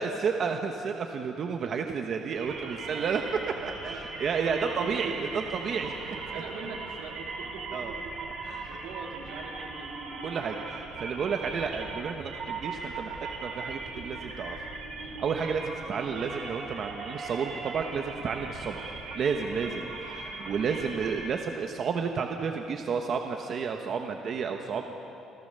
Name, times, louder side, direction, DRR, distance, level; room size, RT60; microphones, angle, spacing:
voice 1, 0.0-3.3 3.6-6.4 7.7-8.0 8.5-8.8 10.2-13.1 13.4-14.6 15.2-25.0, right 6 dB, 45° right, 4 dB, 1.1 m, -31 dB
sound 1, 2.4-21.2, right 3 dB, 60° right, 4.3 m, -39 dB
voice 2, 4.7-10.0 15.7-15.9 19.9-20.0, right 5 dB, 80° right, 1 dB, 2.9 m, -43 dB
28.0 x 16.5 x 6.8 m, 2.8 s
cardioid pair, 160°, 0 cm